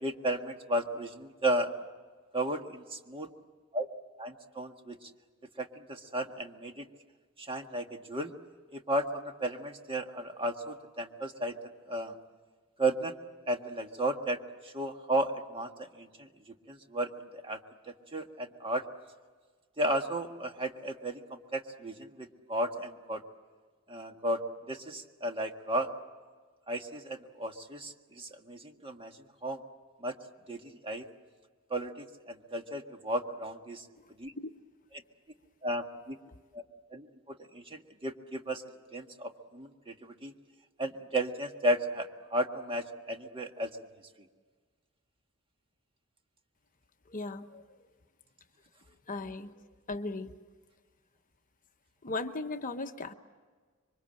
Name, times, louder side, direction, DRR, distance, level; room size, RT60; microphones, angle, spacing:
voice 1, 0.0-1.7 2.3-3.3 3.7-3.9 4.2-5.1 5.6-6.8 7.4-8.3 8.7-11.5 11.9-12.1 12.8-13.1 13.5-14.4 14.6-15.7 16.0-16.3 16.7-17.6 18.1-18.8 19.8-23.2 23.9-24.4 24.7-25.9 26.7-29.1 29.4-29.6 30.0-30.1 30.5-31.0 31.7-33.8 34.2-34.3 35.6-36.2 36.5-36.6 36.9-38.6 38.9-40.3 40.8-43.7, right 1 dB, 25° right, 4 dB, 1.7 m, -34 dB
voice 2, 47.1-47.6 49.1-50.3 52.0-53.1, left 3 dB, 40° left, 7 dB, 0.9 m, -37 dB
26.5 x 24.0 x 7.7 m, 1.5 s
head